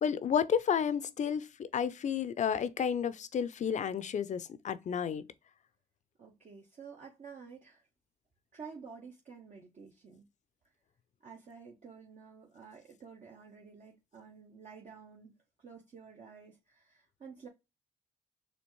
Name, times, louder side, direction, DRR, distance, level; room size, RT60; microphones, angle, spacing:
voice 1, 0.0-5.2, left 7 dB, 50° left, 0.5 m, -31 dB
voice 2, 6.2-7.9 8.5-10.3 11.2-17.5, right 5 dB, 50° right, 0.9 m, -51 dB
4.3 x 2.8 x 3.0 m
supercardioid pair, 50°, 15 cm